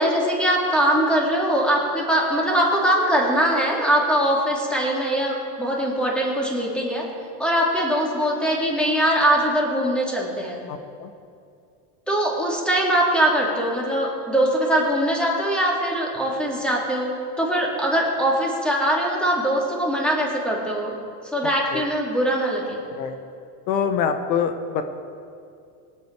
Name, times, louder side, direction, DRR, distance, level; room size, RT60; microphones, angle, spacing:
voice 1, 0.0-7.1 7.4-10.6 12.1-21.0 21.3-22.8, right 1 dB, ahead, -3 dB, 2.9 m, -22 dB
voice 2, 10.7-11.1 21.4-21.8 23.0-23.2 23.7-24.8, left 7 dB, 85° left, 7 dB, 1.2 m, -25 dB
19.0 x 9.3 x 4.8 m, 2.4 s
supercardioid pair, 125°, 49 cm